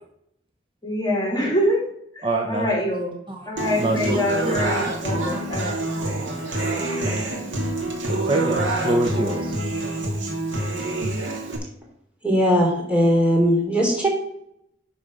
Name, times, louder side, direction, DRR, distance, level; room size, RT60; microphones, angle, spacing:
voice 1, 0.8-1.8 2.1-3.2 3.5-5.8 6.1-6.2 6.5-6.6, left 1 dB, 25° left, -1 dB, 2.9 m, -25 dB
voice 2, 2.2-2.7 3.3-3.5 3.8-4.5 7.0-7.2 8.1-9.6, right 2 dB, 30° right, 2 dB, 0.9 m, -25 dB
Human voice / Acoustic guitar, 3.6-11.6, right 2 dB, 85° right, 2.5 m, -26 dB
voice 3, 12.2-14.1, equal, 5° right, -2 dB, 3.1 m, -19 dB
10.5 x 4.3 x 6.3 m, 0.73 s
head